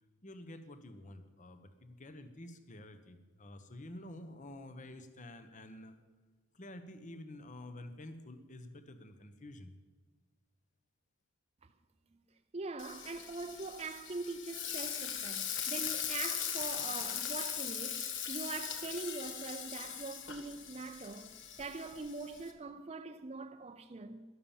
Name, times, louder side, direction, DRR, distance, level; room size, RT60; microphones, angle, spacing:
voice 1, 0.2-5.9 6.5-9.7, left 1 dB, 35° left, 1.0 m, -49 dB
voice 2, 12.5-21.3 21.6-24.2, right 3 dB, 30° right, 0.6 m, -43 dB
Frying (food), 12.8-22.5, left 8 dB, 60° left, 1.4 m, -40 dB
12.5 x 11.5 x 7.2 m
head